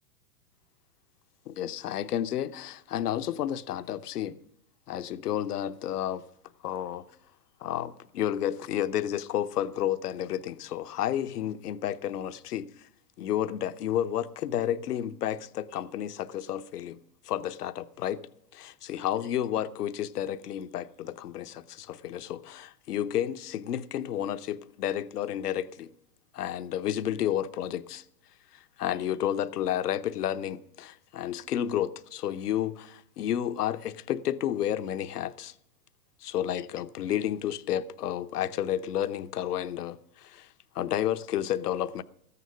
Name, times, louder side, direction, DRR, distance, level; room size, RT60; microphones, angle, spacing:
voice 1, 1.5-4.4 4.9-6.2 6.6-7.0 7.6-12.9 13.2-17.0 17.2-18.2 18.5-25.9 26.3-28.0 28.5-35.5 36.2-40.5 40.7-42.0, left 11 dB, 80° left, 0.8 m, -31 dB
14.0 x 9.9 x 5.1 m
hypercardioid pair, 120°, 46 cm